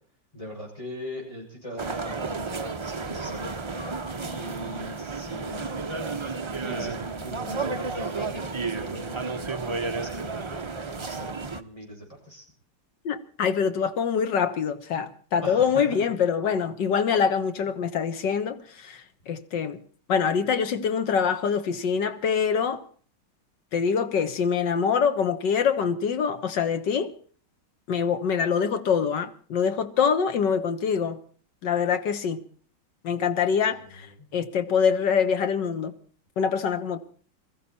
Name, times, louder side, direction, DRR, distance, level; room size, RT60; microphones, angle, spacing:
voice 1, 0.3-3.5 4.2-5.7 6.6-12.4 15.4-16.0 33.7-34.1, equal, 15° left, 6.7 m, -40 dB
sound 1, 1.8-11.6, right 3 dB, 45° right, 0.3 m, -32 dB
voice 2, 13.1-19.8 20.1-22.8 23.7-27.1 27.9-31.2 31.6-32.4 33.0-34.1 34.3-35.9 36.4-37.0, left 6 dB, 75° left, 1.9 m, -25 dB
21.0 x 14.5 x 4.3 m
omnidirectional pair, 1.9 m